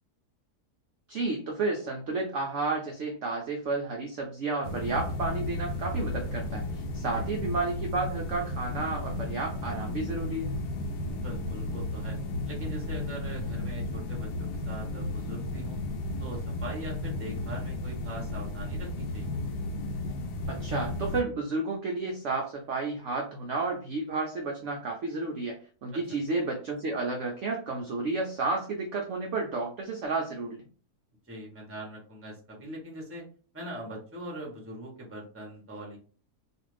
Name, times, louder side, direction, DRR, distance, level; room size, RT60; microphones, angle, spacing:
voice 1, 1.1-10.5 20.5-30.6, right 3 dB, 70° right, 1 dB, 0.7 m, -31 dB
sound 1, 4.6-21.2, left 2 dB, 75° left, 1.1 m, -34 dB
voice 2, 11.0-12.2 12.4-15.8 16.2-19.4 25.9-26.2 31.3-33.2 33.5-36.0, right 1 dB, 15° right, -1 dB, 0.6 m, -42 dB
2.5 x 2.5 x 3.2 m, 0.40 s
omnidirectional pair, 1.7 m